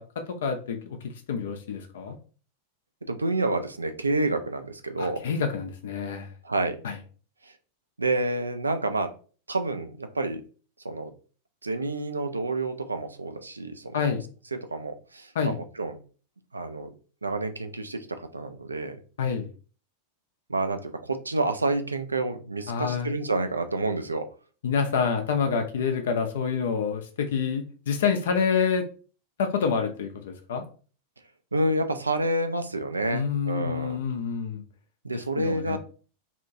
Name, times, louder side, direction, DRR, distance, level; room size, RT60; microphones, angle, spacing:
voice 1, 0.4-1.0 1.3-2.2 5.0-6.3 6.8-6.9 13.9-14.2 15.4-15.6 19.2-19.5 22.7-23.1 24.6-28.8 29.4-30.6 33.1-34.6 35.4-35.8, left 6 dB, 60° left, 5 dB, 0.4 m, -27 dB
voice 2, 3.1-5.2 6.4-6.8 8.0-9.1 9.5-10.4 10.8-11.1 11.6-14.2 14.5-16.0 16.5-16.9 17.2-19.0 20.5-24.3 31.5-34.0 35.0-35.8, right 2 dB, 80° right, 8 dB, 0.3 m, -29 dB
2.8 x 2.2 x 2.6 m, 0.39 s
figure-of-eight pair, 90°, 0 cm